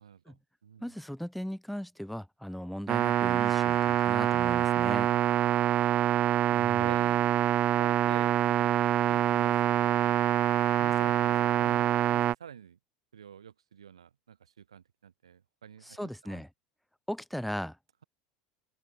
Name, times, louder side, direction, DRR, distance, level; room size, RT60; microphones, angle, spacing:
voice 1, 0.0-0.9 6.6-7.3 7.7-8.8 9.1-10.2 10.8-12.8 13.1-16.4, right 8 dB, 85° right, 5.8 m, -47 dB
voice 2, 0.8-5.1 6.5-6.9 15.8-16.5 17.1-17.8, equal, ahead, 3.2 m, -38 dB
sound 1, 2.9-12.3, right 12 dB, 45° right, 1.6 m, -25 dB
open air
hypercardioid pair, 80°, 3 cm